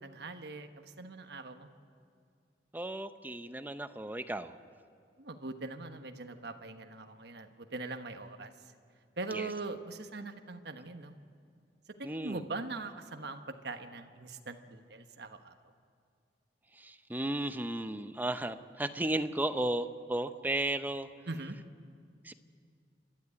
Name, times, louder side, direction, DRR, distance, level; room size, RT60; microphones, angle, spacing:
voice 1, 0.0-1.7 5.2-8.5 9.2-11.1 12.0-15.5 21.3-21.6, right 3 dB, 65° right, 6 dB, 1.2 m, -41 dB
voice 2, 2.7-4.6 9.3-9.5 12.0-12.5 16.8-21.1 22.2-22.3, right 1 dB, 10° right, 10 dB, 0.6 m, -34 dB
28.5 x 12.5 x 9.7 m, 2.3 s
head